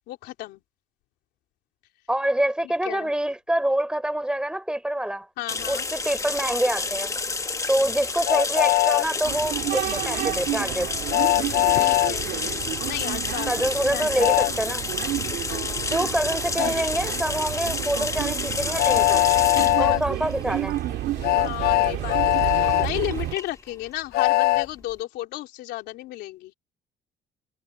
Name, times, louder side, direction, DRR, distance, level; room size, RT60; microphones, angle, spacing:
voice 1, 0.1-0.6 2.8-3.1 5.4-5.9 11.7-14.4 15.5-16.0 19.6-20.1 21.4-26.5, left 16 dB, 85° left, 3.4 m, -34 dB
voice 2, 2.1-5.3 5.7-7.1 7.7-10.9 13.5-14.8 15.9-19.2 19.8-20.7, right 1 dB, 5° right, 3.6 m, -26 dB
sound 1, 5.5-24.9, left 3 dB, 20° left, 1.3 m, -31 dB
Train, 8.3-9.1 11.1-12.1 14.2-14.5 16.6-16.7 18.8-20.0 21.2-22.9 24.1-24.7, left 19 dB, 65° left, 0.5 m, -20 dB
sound 2, 9.2-23.3, right 15 dB, 80° right, 2.6 m, -31 dB
cardioid pair, 110°, 17 cm